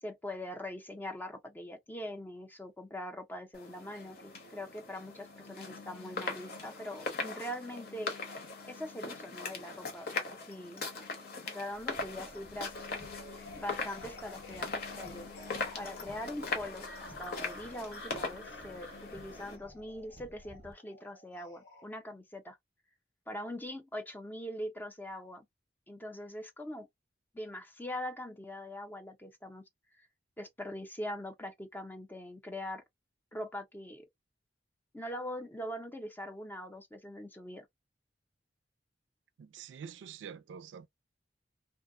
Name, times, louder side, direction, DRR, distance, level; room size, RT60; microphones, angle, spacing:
voice 1, 0.0-8.1 8.6-10.8 11.5-12.8 13.6-15.3 15.7-22.6 23.3-25.5 25.9-26.9 27.3-29.6 30.0-30.1 30.4-32.8 33.3-34.1 34.9-37.7, left 1 dB, 10° left, 0.5 m, -42 dB
sound 1, 3.5-19.6, left 3 dB, 55° left, 0.9 m, -41 dB
Car, 11.7-20.7, right 1 dB, 25° right, 0.7 m, -56 dB
sound 2, 12.7-21.8, left 2 dB, 75° left, 1.1 m, -51 dB
voice 2, 39.4-40.9, right 7 dB, 80° right, 0.3 m, -46 dB
2.7 x 2.0 x 2.5 m
head